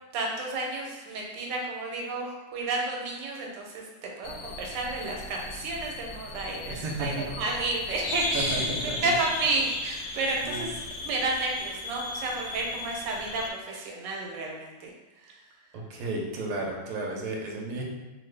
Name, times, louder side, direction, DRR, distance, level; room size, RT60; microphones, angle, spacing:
voice 1, 0.1-3.8 4.2-10.8 11.0-14.9 15.2-15.3, right 2 dB, 85° right, 0 dB, 1.3 m, -31 dB
sound 1, 4.2-13.5, left 2 dB, 70° left, 0.9 m, -36 dB
voice 2, 6.7-7.4 8.3-9.1 10.4-10.7 15.7-17.8, right 2 dB, 70° right, -1 dB, 1.0 m, -33 dB
2.9 x 2.5 x 3.2 m, 1.2 s
omnidirectional pair, 1.9 m